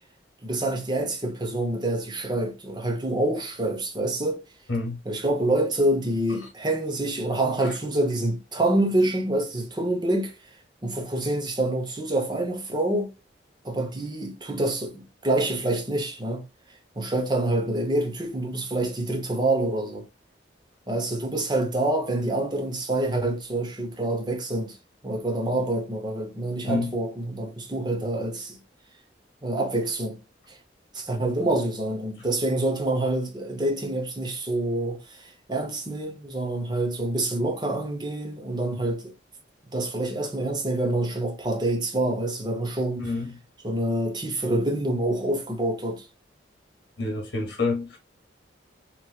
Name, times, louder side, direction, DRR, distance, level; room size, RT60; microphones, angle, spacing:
voice 1, 0.4-4.4 5.0-10.3 10.8-13.1 13.6-16.5 17.0-20.0 20.9-24.8 25.0-28.6 29.4-30.2 30.5-30.6 30.9-39.1 39.7-43.1 43.6-46.1, right 1 dB, 20° right, 0.7 m, -26 dB
voice 2, 47.0-48.0, left 3 dB, 60° left, 1.0 m, -27 dB
3.0 x 3.0 x 2.2 m
head